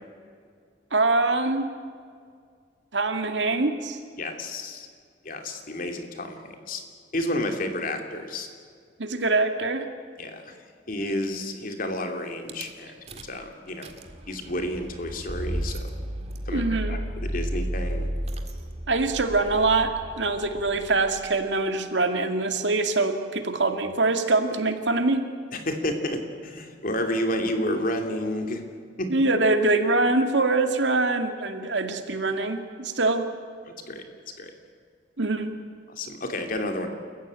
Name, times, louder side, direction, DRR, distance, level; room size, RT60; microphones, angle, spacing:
voice 1, 0.9-1.7 2.9-4.0 9.0-9.9 16.5-17.0 18.9-25.2 29.1-33.3 35.2-35.6, right 3 dB, 80° right, 6 dB, 2.2 m, -24 dB
voice 2, 4.2-4.9 5.2-6.8 7.1-8.5 10.2-10.6 10.9-12.9 13.2-13.9 14.3-15.9 16.5-18.1 25.5-28.6 29.0-29.1 33.9-34.0 34.4-34.5 35.9-36.9, left 1 dB, 50° left, 4 dB, 2.8 m, -30 dB
Rattle / Car / Engine starting, 12.5-12.7 13.1-13.4 13.7-21.4, equal, 35° right, 2.0 m, -33 dB
29.0 x 15.0 x 8.9 m, 2.1 s
head